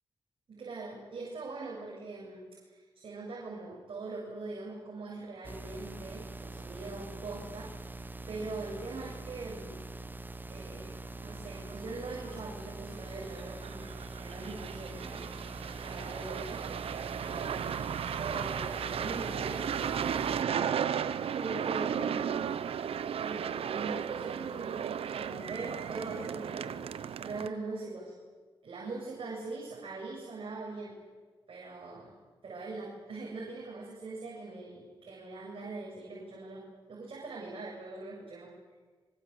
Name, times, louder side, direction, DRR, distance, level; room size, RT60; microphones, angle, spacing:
voice 1, 0.5-9.8 10.5-13.9 14.2-15.4 15.8-16.7 17.2-17.9 18.2-22.2 23.2-24.8 25.1-26.9 27.2-28.1 28.6-30.9 31.5-32.1 32.4-38.5, right 3 dB, 65° right, -3 dB, 7.5 m, -42 dB
sound 1, 5.4-20.4, right 2 dB, 20° right, 1.0 m, -44 dB
sound 2, 11.7-11.8 12.2-12.3 13.4-27.5, right 8 dB, 85° right, 0.9 m, -35 dB
26.5 x 24.5 x 8.2 m, 1.5 s
cardioid pair, 85°, 10 cm